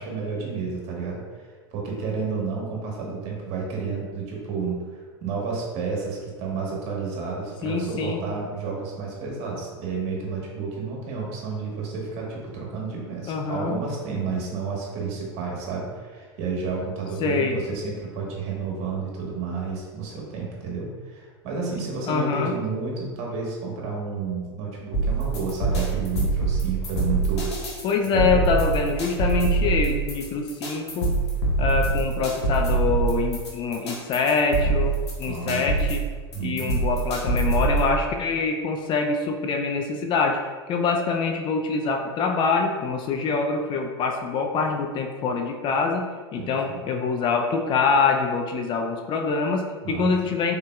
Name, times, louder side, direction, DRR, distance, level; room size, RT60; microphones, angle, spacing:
voice 1, 0.0-27.5 28.1-28.4 35.2-35.7 36.3-36.8 46.4-46.9 49.8-50.3, right 4 dB, 50° right, -2 dB, 1.2 m, -31 dB
voice 2, 7.6-8.2 13.3-13.8 17.2-17.6 22.1-22.6 27.8-31.1 31.6-36.0 36.4-50.6, left 4 dB, 35° left, 3 dB, 0.4 m, -25 dB
sound 1, 24.9-37.9, right 3 dB, 75° left, 1.1 m, -24 dB
3.9 x 3.6 x 2.3 m, 1.5 s
hypercardioid pair, 90°, 14 cm